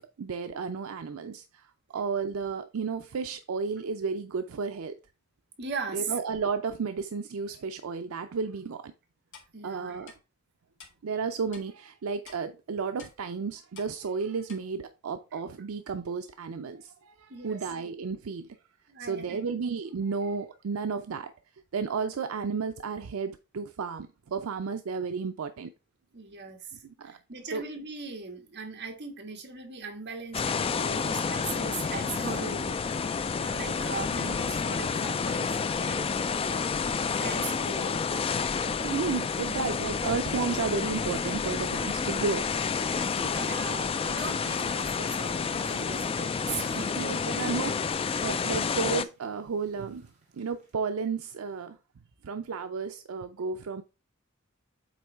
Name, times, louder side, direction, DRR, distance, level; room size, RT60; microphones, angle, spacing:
voice 1, 0.0-1.7 1.9-4.9 5.9-8.9 9.6-10.1 11.0-18.6 19.0-21.3 21.7-25.7 26.8-27.2 27.5-27.6 38.8-42.5 47.0-47.9 48.2-50.1 50.3-51.8 52.2-53.8, right 5 dB, 80° right, 0.5 m, -33 dB
voice 2, 5.6-6.2 9.5-10.1 15.3-15.4 17.3-17.6 18.9-19.4 26.1-33.1 33.4-36.7 37.1-38.0 43.0-47.3, right 4 dB, 55° right, 1.6 m, -39 dB
Clock, 9.3-9.5 10.1-10.2 10.8-10.9 11.5-11.7 12.3-12.4 13.0-13.2 13.8-13.9 14.5-14.6, left 5 dB, 60° left, 1.9 m, -48 dB
sound 1, 30.3-49.0, left 5 dB, 25° left, 0.3 m, -30 dB
Dog, 45.4-50.7, right 2 dB, 35° right, 2.3 m, -57 dB
8.0 x 3.1 x 4.5 m
head